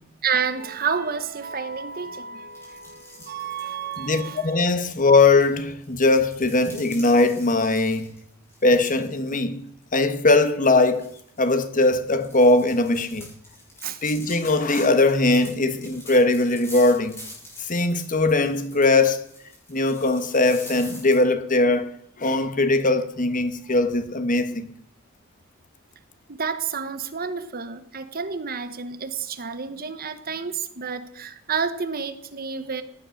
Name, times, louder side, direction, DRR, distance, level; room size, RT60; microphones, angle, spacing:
voice 1, 0.2-4.6 13.8-14.0 26.3-32.8, right 6 dB, 45° right, 1.0 m, -30 dB
sound 1, 2.5-4.4 5.2-9.3 9.7-9.8 10.3-10.4 10.9-21.2, left 1 dB, 10° left, 7.0 m, -44 dB
voice 2, 4.0-8.2 8.6-9.6 9.9-11.1 11.4-13.3 14.0-17.2 17.6-19.2 19.7-21.9 22.2-24.7, left 2 dB, 35° left, 1.2 m, -20 dB
17.0 x 10.0 x 6.4 m
head